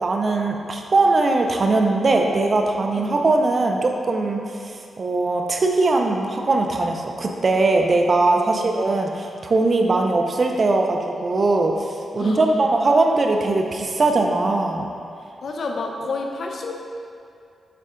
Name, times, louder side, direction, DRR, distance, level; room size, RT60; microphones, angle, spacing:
voice 1, 0.0-14.9, right 2 dB, 45° right, 2 dB, 0.5 m, -20 dB
voice 2, 12.2-12.7 15.4-16.7, left 3 dB, 60° left, 2 dB, 0.7 m, -30 dB
6.7 x 4.7 x 3.8 m, 2.5 s
cardioid pair, 80°, 0 cm